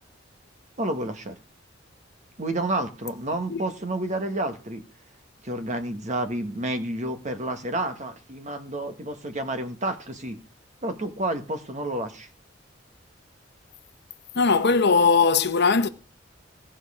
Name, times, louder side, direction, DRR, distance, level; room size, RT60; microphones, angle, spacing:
voice 1, 0.8-1.4 2.4-4.8 5.4-10.4 10.8-12.3, right 1 dB, 40° right, 1.4 m, -30 dB
voice 2, 14.4-15.9, left 4 dB, 60° left, 0.8 m, -19 dB
16.5 x 6.3 x 4.9 m
head